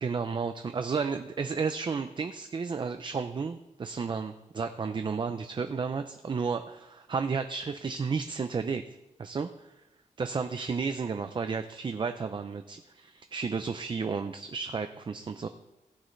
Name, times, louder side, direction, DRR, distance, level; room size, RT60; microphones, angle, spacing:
voice 1, 0.0-8.8 9.2-9.7 10.2-15.5, right 5 dB, 35° right, 8 dB, 0.5 m, -32 dB
16.5 x 11.5 x 3.2 m, 0.96 s
wide cardioid pair, 175°, 14 cm